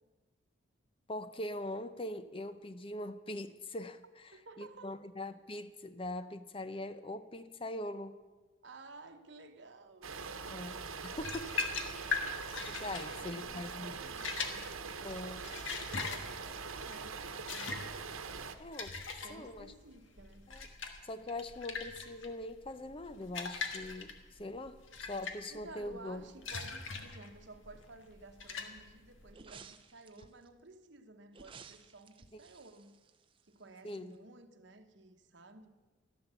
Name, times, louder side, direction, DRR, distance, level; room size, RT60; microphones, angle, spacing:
voice 1, 1.1-8.2 10.5-11.6 12.6-14.0 15.0-15.6 18.6-19.0 19.3-19.7 20.5-20.7 21.0-26.3 30.2-30.3 32.3-32.4 33.8-34.2, left 1 dB, 25° left, 0.6 m, -42 dB
voice 2, 4.3-4.9 8.6-10.1 11.7-14.6 16.0-17.9 19.2-20.5 25.5-33.0 33.4-35.7, right 2 dB, 60° right, 1.1 m, -54 dB
sound 1, 10.0-18.5, right 5 dB, 90° right, 1.0 m, -43 dB
sound 2, 11.2-29.3, left 4 dB, 70° left, 1.5 m, -41 dB
sound 3, 29.3-30.5 31.3-33.8 34.1-34.2, right 5 dB, 25° right, 0.6 m, -55 dB
13.0 x 12.0 x 6.9 m
head